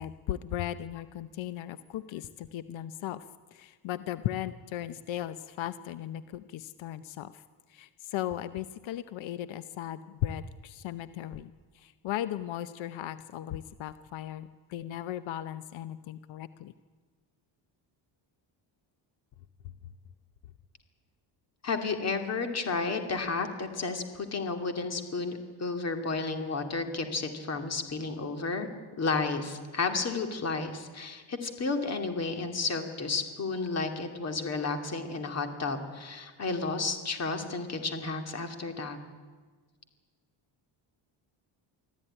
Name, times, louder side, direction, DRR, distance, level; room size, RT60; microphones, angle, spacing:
voice 1, 0.0-3.2 3.5-7.3 7.7-16.7, left 12 dB, 85° left, 13 dB, 0.9 m, -37 dB
voice 2, 21.6-28.7 29.0-39.0, left 4 dB, 35° left, 6 dB, 2.6 m, -32 dB
24.0 x 15.0 x 10.0 m, 1.4 s
cardioid pair, 160°, 45 cm